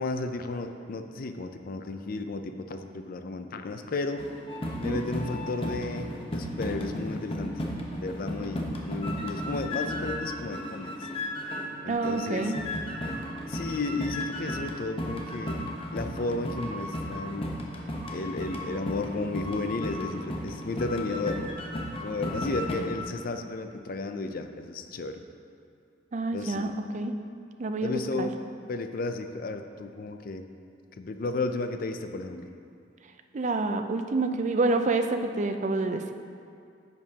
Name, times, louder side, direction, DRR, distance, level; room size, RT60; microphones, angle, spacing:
voice 1, 0.0-4.2 4.8-7.6 8.0-10.9 11.8-12.5 13.5-15.6 15.9-17.6 18.1-21.5 22.0-25.2 26.3-26.8 27.8-28.4 28.7-30.5 31.0-32.5, left 3 dB, 50° left, 7 dB, 0.5 m, -33 dB
sound 1, 4.2-11.8 12.0-22.7, equal, 30° left, 0.9 m, -35 dB
voice 2, 11.9-12.6 26.1-27.1 27.6-28.3 33.3-36.1, right 3 dB, 40° right, 7 dB, 0.4 m, -28 dB
10.5 x 7.3 x 2.8 m, 2.4 s
head